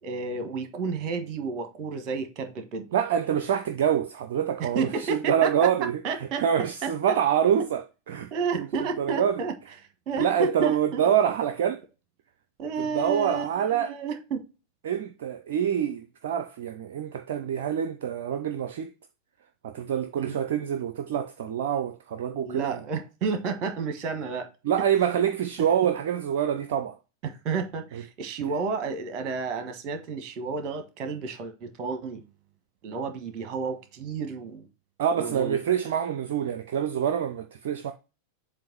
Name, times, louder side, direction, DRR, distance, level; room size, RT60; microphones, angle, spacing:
voice 1, 0.0-2.9 4.6-5.7 6.0-6.4 6.8-7.2 8.3-9.5 10.1-11.1 12.6-14.4 20.2-20.4 22.4-24.5 27.2-32.2 32.8-34.7 35.2-35.6, right 5 dB, 35° right, 1.5 m, -31 dB
voice 2, 2.9-8.7 9.0-9.4 10.1-11.8 12.8-13.9 14.8-18.9 19.6-22.8 24.6-27.0 27.9-28.0 35.0-37.9, right 9 dB, 55° right, 0.5 m, -26 dB
7.6 x 2.6 x 5.3 m
figure-of-eight pair, 90°, 0 cm